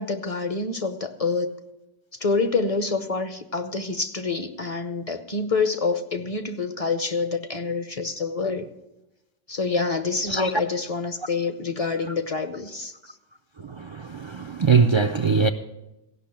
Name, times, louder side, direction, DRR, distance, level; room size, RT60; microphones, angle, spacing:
voice 1, 0.0-1.5 2.2-8.7 9.5-12.9, left 4 dB, 40° left, 0.8 m, -27 dB
voice 2, 13.8-15.5, right 5 dB, 40° right, 0.4 m, -21 dB
15.5 x 6.0 x 8.8 m
omnidirectional pair, 1.0 m